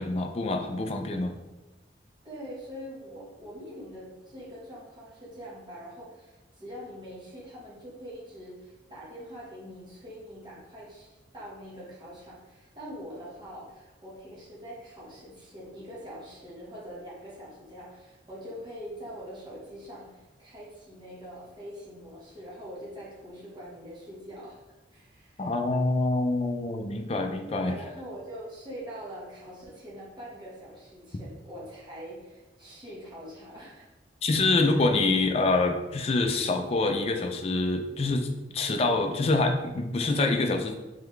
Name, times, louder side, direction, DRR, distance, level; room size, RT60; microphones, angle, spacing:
voice 1, 0.0-1.3 25.4-27.8 34.2-38.3 38.5-40.7, left 2 dB, 35° left, 5 dB, 0.4 m, -26 dB
voice 2, 2.2-24.6 24.9-25.5 27.5-33.9 34.4-34.8, equal, 25° right, -7 dB, 1.2 m, -44 dB
3.7 x 3.4 x 3.2 m, 1.1 s
head